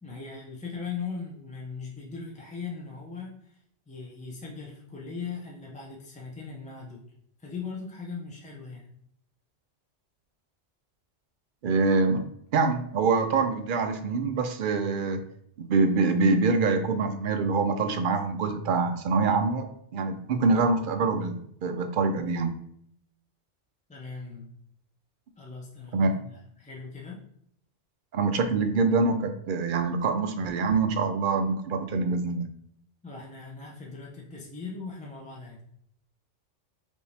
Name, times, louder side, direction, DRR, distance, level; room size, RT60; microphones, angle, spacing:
voice 1, 0.0-3.6 3.9-7.0 7.4-8.9 23.9-24.6 25.4-27.2 33.0-35.6, left 5 dB, 10° left, -3 dB, 0.4 m, -39 dB
voice 2, 11.6-12.2 12.5-15.2 15.6-19.7 19.9-22.6 25.9-26.1 28.1-32.5, right 4 dB, 60° right, 7 dB, 0.5 m, -25 dB
5.1 x 2.7 x 3.3 m, 0.70 s
omnidirectional pair, 1.2 m